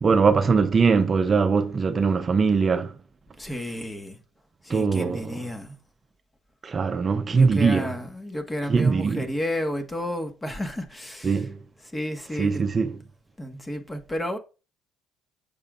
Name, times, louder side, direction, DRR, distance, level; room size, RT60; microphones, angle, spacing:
voice 1, 0.0-2.9 4.7-5.5 6.6-7.9 8.7-9.3 11.2-11.6 12.4-13.0, right 5 dB, 35° right, 0.6 m, -21 dB
voice 2, 3.4-4.2 4.6-5.7 7.3-11.5 11.9-12.6 13.4-14.4, left 1 dB, 15° left, 1.5 m, -31 dB
8.4 x 6.8 x 2.5 m
supercardioid pair, 85°, 0 cm